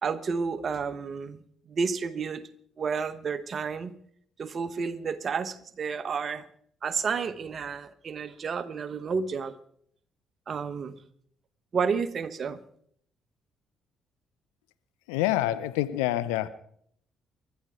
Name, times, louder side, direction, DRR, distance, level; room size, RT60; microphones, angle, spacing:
voice 1, 0.0-1.4 1.7-2.5 2.8-3.9 4.4-6.4 6.8-9.5 10.5-11.0 11.7-12.6, right 5 dB, 45° right, 1.3 m, -31 dB
voice 2, 15.1-16.5, left 15 dB, 70° left, 0.8 m, -26 dB
29.5 x 13.0 x 3.8 m
figure-of-eight pair, 45°, 0 cm